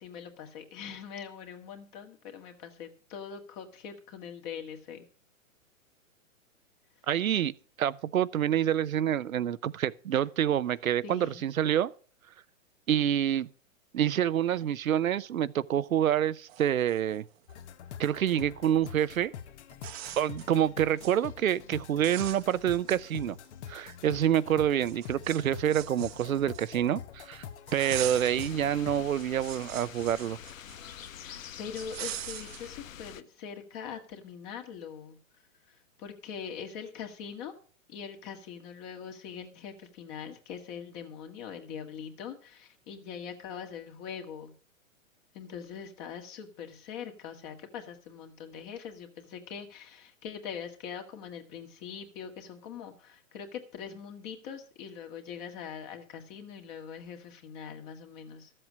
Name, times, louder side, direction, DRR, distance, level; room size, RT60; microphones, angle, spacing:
voice 1, 0.0-5.0 11.0-11.5 31.2-35.2 35.7-37.5 37.9-44.5 45.3-58.5, left 7 dB, 35° left, 1.8 m, -42 dB
voice 2, 7.1-7.5 7.8-11.9 12.9-13.5 13.9-17.2 18.0-19.3 20.2-23.4 23.7-27.4 27.7-30.4, right 10 dB, 90° right, 0.8 m, -27 dB
sound 1, 16.5-17.6 19.1-19.2 19.7-20.5 20.8-21.2 21.6-21.8 22.0-23.5 23.9-24.0 24.8-27.0 27.7-28.6 29.0-31.1 31.8-32.7, right 13 dB, 50° right, 0.9 m, -42 dB
sound 2, 17.5-29.1, left 8 dB, 55° left, 1.3 m, -45 dB
sound 3, 27.9-33.2, left 9 dB, 75° left, 1.0 m, -46 dB
13.0 x 7.8 x 6.2 m
hypercardioid pair, 140°, 40 cm